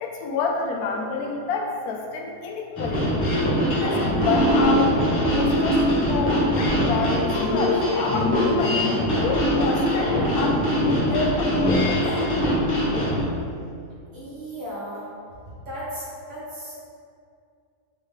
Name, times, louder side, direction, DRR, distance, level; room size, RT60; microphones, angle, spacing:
voice 1, 0.0-3.2 3.6-8.8 9.2-12.0, left 3 dB, 85° left, 2 dB, 1.1 m, -28 dB
sound 1, 2.8-13.2, left 1 dB, 50° left, 1.4 m, -22 dB
voice 2, 14.1-15.1 15.5-16.7, equal, 60° right, -9 dB, 1.8 m, -35 dB
4.7 x 3.0 x 3.6 m, 2.3 s
omnidirectional pair, 1.6 m